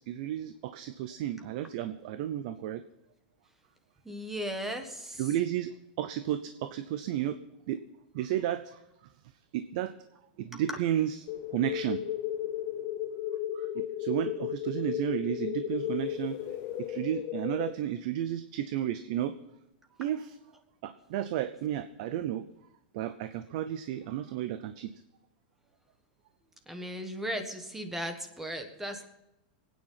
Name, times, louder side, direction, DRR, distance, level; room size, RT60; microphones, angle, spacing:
voice 1, 0.0-2.8 5.2-5.7 6.0-7.4 7.7-7.8 8.1-8.8 9.5-9.9 10.4-11.2 11.5-12.0 13.5-16.4 16.9-19.3 20.0-20.3 20.8-22.5 22.9-24.9, right 11 dB, 50° right, 12 dB, 0.7 m, -32 dB
voice 2, 4.0-5.3 10.5-10.8 19.9-20.0 26.7-29.0, equal, 5° right, 7 dB, 1.5 m, -37 dB
sound 1, 11.3-17.7, left 12 dB, 40° left, 0.8 m, -34 dB
20.5 x 9.4 x 5.7 m, 0.91 s
supercardioid pair, 155°, 5 cm